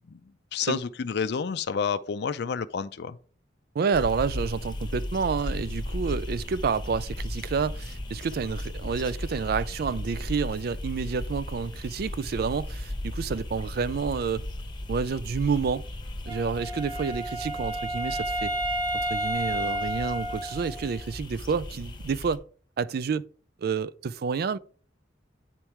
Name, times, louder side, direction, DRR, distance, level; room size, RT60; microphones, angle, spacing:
voice 1, 0.5-3.2, left 6 dB, 60° left, 0.4 m, -29 dB
voice 2, 3.8-14.5 14.9-15.9 16.3-18.5 19.1-22.4 22.8-23.3 23.6-24.6, right 5 dB, 55° right, 0.3 m, -29 dB
sound 1, 3.9-22.4, left 1 dB, 25° left, 1.0 m, -36 dB
Wind instrument woodwind instrument, 16.3-21.1, right 1 dB, 25° right, 1.3 m, -31 dB
8.7 x 4.5 x 4.5 m
head